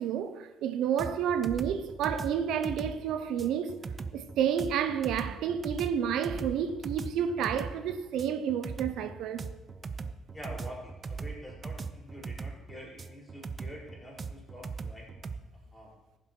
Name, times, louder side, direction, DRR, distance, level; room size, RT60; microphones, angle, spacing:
voice 1, 0.0-3.9 4.1-9.4, right 8 dB, 80° right, 0.7 m, -30 dB
sound 1, 1.0-15.4, right 4 dB, 30° right, 0.6 m, -39 dB
voice 2, 10.3-15.1 15.7-15.9, equal, 15° left, 4.5 m, -46 dB
15.5 x 7.5 x 4.5 m
cardioid pair, 135°, 0 cm